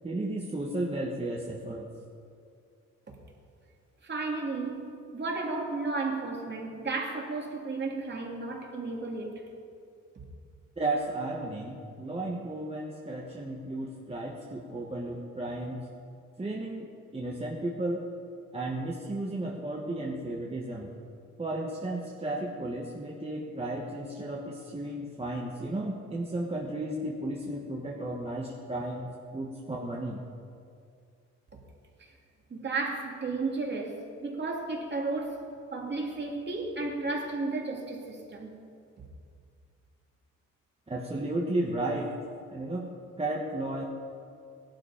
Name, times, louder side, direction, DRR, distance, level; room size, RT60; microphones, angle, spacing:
voice 1, 0.0-1.9 10.8-15.9 16.4-18.1 18.5-20.9 21.4-30.2 40.9-42.2 42.5-43.9, right 1 dB, 20° right, -1 dB, 1.5 m, -34 dB
voice 2, 4.0-9.4 32.0-32.1 32.5-38.6, right 3 dB, 35° right, 0 dB, 2.9 m, -33 dB
17.0 x 12.0 x 5.2 m, 2.4 s
cardioid pair, 90°, 30 cm